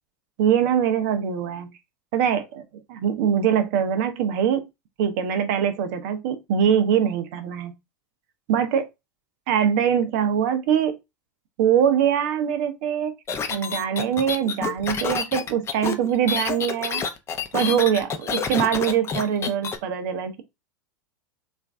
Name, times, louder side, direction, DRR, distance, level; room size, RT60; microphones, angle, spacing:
voice 1, 0.4-1.7 2.1-2.6 2.9-4.6 5.0-7.7 8.5-8.9 9.5-11.0 11.6-13.1 13.5-17.0 17.5-20.4, right 8 dB, 55° right, 0.8 m, -23 dB
sound 1, 13.3-19.8, left 6 dB, 25° left, 0.6 m, -28 dB
3.1 x 2.6 x 3.4 m
hypercardioid pair, 90°, 10 cm